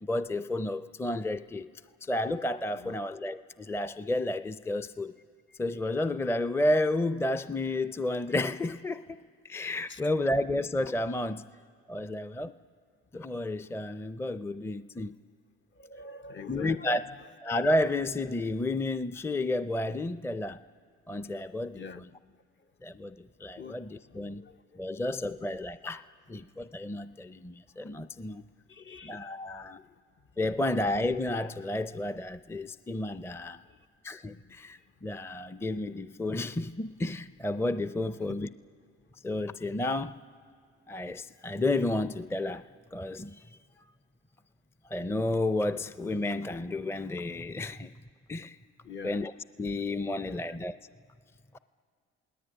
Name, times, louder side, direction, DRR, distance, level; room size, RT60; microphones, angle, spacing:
voice 1, 0.0-1.7 2.0-5.1 5.6-9.2 9.4-11.5 11.9-12.5 13.1-15.1 16.5-17.0 17.4-20.6 21.1-22.1 22.8-24.4 24.8-28.4 29.0-29.8 30.4-33.6 34.0-38.5 39.2-40.2 40.9-43.4 44.9-47.9 48.3-48.6 49.0-49.3 49.6-50.8 51.5-51.6, left 2 dB, 10° left, 0.6 m, -31 dB
voice 2, 15.8-17.0 21.7-22.0 23.6-23.8 24.1-25.0 28.7-29.3 29.8-29.9 34.3-34.4 38.3-38.4 48.8-49.2 50.2-50.5, left 5 dB, 40° left, 0.9 m, -45 dB
29.0 x 19.0 x 9.1 m
supercardioid pair, 65°, 29 cm